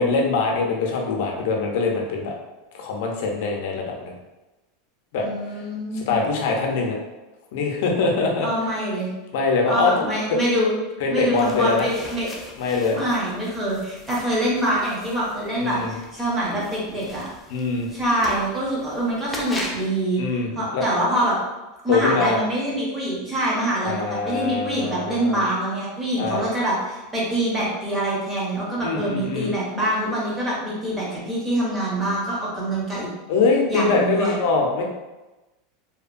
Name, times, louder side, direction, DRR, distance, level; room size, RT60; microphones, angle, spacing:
voice 1, 0.0-2.3 2.7-4.1 5.1-5.2 5.9-7.0 7.5-8.5 9.3-9.9 10.3-10.4 11.0-11.9 12.6-13.0 15.6-15.9 17.5-17.9 20.2-20.8 21.9-22.4 23.8-25.4 26.2-26.5 28.8-29.5 33.3-34.8, left 4 dB, 65° left, 0 dB, 0.5 m, -23 dB
voice 2, 5.2-6.2 8.4-9.1 9.7-10.7 11.1-12.3 12.9-17.3 17.9-20.2 20.6-21.3 21.8-33.1 33.7-34.3, right 1 dB, 15° right, -6 dB, 0.8 m, -25 dB
sound 1, 11.4-19.9, left 1 dB, 10° left, 0.3 m, -40 dB
2.8 x 2.2 x 2.4 m, 1.1 s
supercardioid pair, 160°, 0 cm